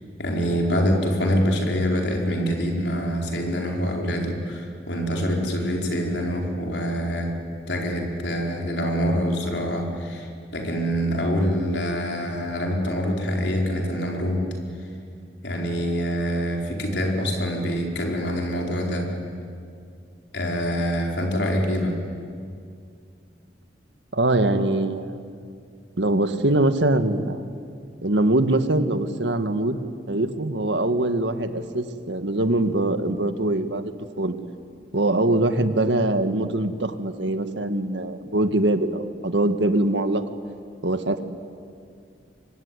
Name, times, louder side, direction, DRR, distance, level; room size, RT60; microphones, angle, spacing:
voice 1, 0.2-7.4 7.7-14.4 15.4-19.1 20.3-21.9, equal, 70° left, 1 dB, 4.7 m, -25 dB
voice 2, 24.1-25.2 26.0-27.4 28.0-29.8 30.1-33.9 34.2-34.3 34.9-40.2 40.8-41.2, right 1 dB, 80° right, 9 dB, 1.6 m, -23 dB
24.5 x 24.0 x 9.7 m, 2.3 s
head